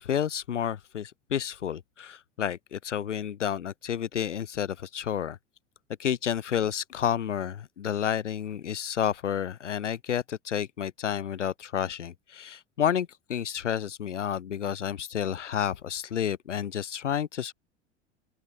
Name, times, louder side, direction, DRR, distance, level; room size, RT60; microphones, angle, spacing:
voice 1, 0.0-5.4 6.0-17.5, left 9 dB, 85° left, 1.1 m, -30 dB
open air
figure-of-eight pair, 75°, 36 cm